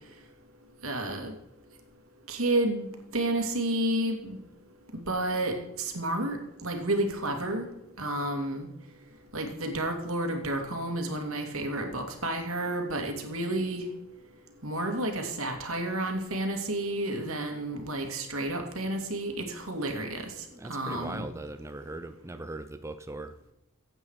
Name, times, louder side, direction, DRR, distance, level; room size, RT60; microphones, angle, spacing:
voice 1, 0.8-1.3 2.3-2.9 3.1-4.4 5.1-7.7 8.0-8.7 9.3-13.9 14.6-21.3, right 1 dB, 80° right, 4 dB, 2.6 m, -31 dB
voice 2, 20.5-23.5, right 2 dB, 15° right, 9 dB, 0.5 m, -40 dB
15.5 x 8.9 x 4.8 m, 0.88 s
head